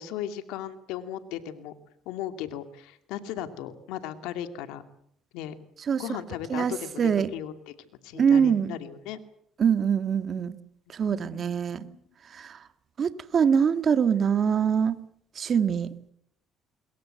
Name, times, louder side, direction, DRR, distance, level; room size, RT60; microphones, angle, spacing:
voice 1, 0.0-1.7 2.1-4.8 5.3-5.5 6.0-7.0 7.3-7.5 8.0-9.2 11.1-11.4 11.7-12.0, left 10 dB, 85° left, 9 dB, 2.5 m, -36 dB
voice 2, 5.8-6.1 6.5-7.3 8.1-8.8 9.6-10.6 10.9-11.9 12.2-12.7 13.0-15.0 15.4-15.9, right 7 dB, 45° right, 11 dB, 1.9 m, -24 dB
27.0 x 22.5 x 7.8 m, 0.70 s
cardioid pair, 95°, 0 cm